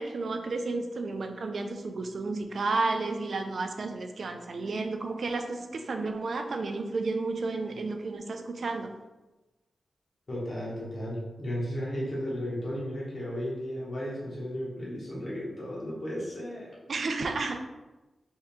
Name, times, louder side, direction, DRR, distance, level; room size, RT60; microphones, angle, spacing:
voice 1, 0.0-8.9 16.9-17.6, right 3 dB, 60° right, 5 dB, 0.4 m, -32 dB
voice 2, 10.3-16.7, equal, 40° left, -6 dB, 1.2 m, -34 dB
4.3 x 3.6 x 2.3 m, 1.1 s
wide cardioid pair, 155°, 0 cm